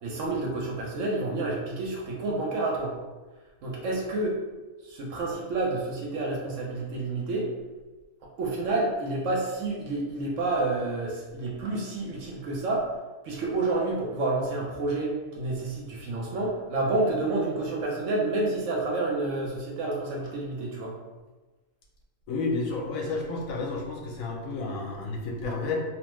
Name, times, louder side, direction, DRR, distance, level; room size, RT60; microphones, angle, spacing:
voice 1, 0.0-2.9 3.6-4.3 4.8-7.5 8.4-12.9 13.2-20.9, right 2 dB, 65° right, -2 dB, 0.9 m, -29 dB
voice 2, 22.3-25.8, left 3 dB, 75° left, 0 dB, 0.9 m, -31 dB
3.0 x 2.1 x 3.0 m, 1.2 s
omnidirectional pair, 1.5 m